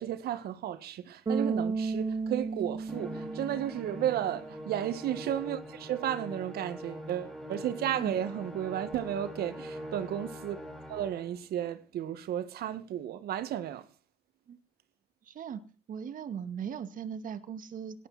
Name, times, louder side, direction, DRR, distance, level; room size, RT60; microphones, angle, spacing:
voice 1, 0.0-10.6 10.9-13.9, right 11 dB, 70° right, 1.8 m, -33 dB
Bass guitar, 1.3-4.4, right 4 dB, 25° right, 1.0 m, -33 dB
Musical instrument, 2.9-11.3, equal, ahead, 5.8 m, -43 dB
voice 2, 15.2-15.6 15.9-18.1, right 7 dB, 50° right, 2.1 m, -38 dB
18.0 x 12.0 x 4.3 m
cardioid pair, 110°, 17 cm